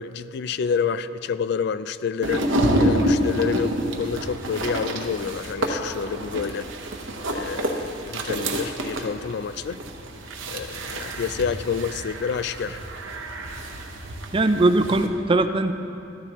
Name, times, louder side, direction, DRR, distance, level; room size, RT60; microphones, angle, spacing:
voice 1, 0.0-2.4 2.8-6.7 7.3-9.8 10.5-12.8, left 6 dB, 55° left, 14 dB, 0.3 m, -28 dB
sound 1, 2.2-15.1, right 1 dB, 70° right, 1.0 m, -28 dB
voice 2, 14.3-15.7, right 2 dB, 25° right, 9 dB, 0.4 m, -20 dB
13.5 x 13.0 x 3.0 m, 2.6 s
head